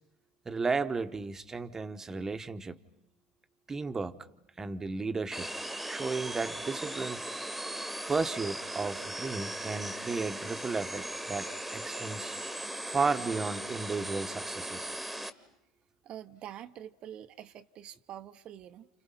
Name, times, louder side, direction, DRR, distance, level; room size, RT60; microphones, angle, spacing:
voice 1, 0.4-2.8 3.7-4.2 4.6-5.5 5.8-7.2 8.1-12.4 12.9-14.9, right 4 dB, 20° right, 1.1 m, -34 dB
sound 1, 5.3-15.3, right 1 dB, 5° right, 1.5 m, -38 dB
voice 2, 16.0-18.9, right 11 dB, 50° right, 0.9 m, -46 dB
30.0 x 29.0 x 5.8 m
hypercardioid pair, 85°, 2 cm